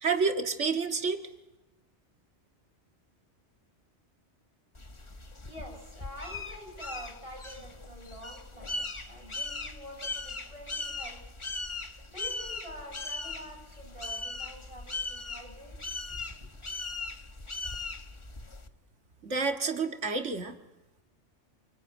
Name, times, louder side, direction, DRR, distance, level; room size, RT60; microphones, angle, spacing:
voice 1, 0.0-1.2 19.2-20.6, right 4 dB, 80° right, 5 dB, 2.2 m, -29 dB
sound 1, 4.7-18.7, left 3 dB, 25° left, 1.3 m, -39 dB
voice 2, 4.9-8.7 9.1-11.3 11.6-15.7 16.3-16.5, equal, 25° right, 1 dB, 8.3 m, -47 dB
27.0 x 23.5 x 9.4 m, 1.0 s
omnidirectional pair, 1.2 m